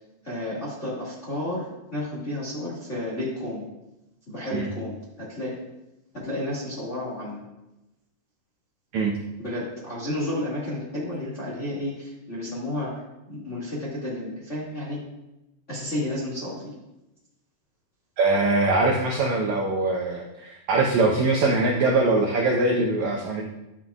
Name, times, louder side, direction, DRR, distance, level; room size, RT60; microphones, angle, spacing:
voice 1, 0.2-3.7 4.3-5.6 6.1-7.4 9.4-12.9 13.3-15.0 15.7-16.7, left 1 dB, 30° left, -6 dB, 1.5 m, -31 dB
voice 2, 18.2-23.4, right 3 dB, 85° right, 0 dB, 1.6 m, -22 dB
11.5 x 7.5 x 2.4 m, 0.94 s
omnidirectional pair, 4.4 m